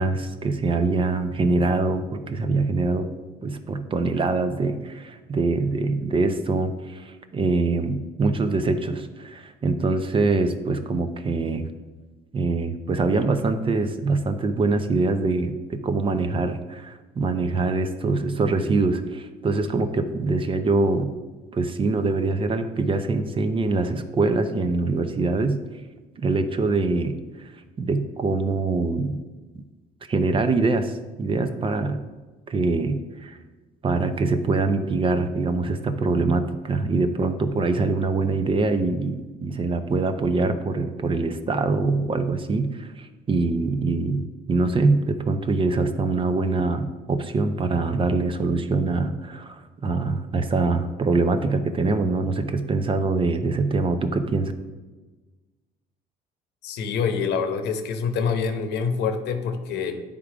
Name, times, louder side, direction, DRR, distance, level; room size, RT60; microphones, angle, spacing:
voice 1, 0.0-3.1 3.4-11.7 12.3-21.1 21.5-25.6 26.2-27.1 27.4-27.5 27.8-29.2 30.1-32.0 32.5-33.4 33.8-54.5, right 3 dB, 30° right, 9 dB, 0.6 m, -24 dB
voice 2, 56.6-60.0, left 6 dB, 80° left, 7 dB, 0.9 m, -26 dB
9.7 x 3.6 x 4.9 m, 1.2 s
cardioid pair, 110°, 17 cm